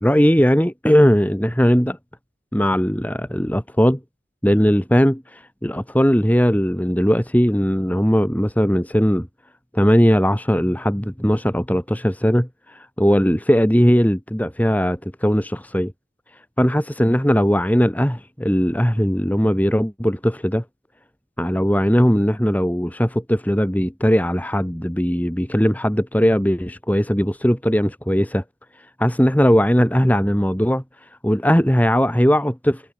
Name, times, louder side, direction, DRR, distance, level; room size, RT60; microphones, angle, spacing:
voice 1, 0.0-2.0 2.5-4.0 4.4-9.3 9.7-15.9 16.6-20.6 21.4-28.4 29.0-30.8 31.2-32.8, equal, 10° left, 3.0 m, -19 dB
head